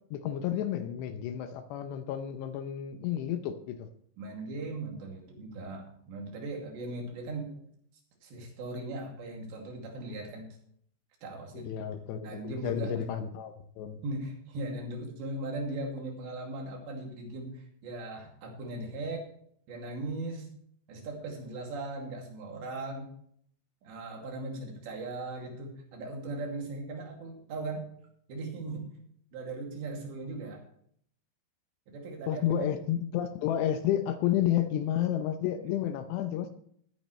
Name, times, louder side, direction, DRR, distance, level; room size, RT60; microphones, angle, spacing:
voice 1, 0.1-3.9 11.5-14.0 32.3-36.5, left 10 dB, 80° left, 8 dB, 2.8 m, -31 dB
voice 2, 4.2-7.6 8.2-10.5 11.2-11.7 12.2-13.0 14.0-19.3 19.7-20.5 20.9-23.1 23.8-27.9 28.3-28.9 29.3-30.6 31.9-32.7, right 2 dB, 70° right, 1 dB, 4.6 m, -38 dB
18.5 x 9.1 x 3.2 m, 0.65 s
omnidirectional pair, 5.3 m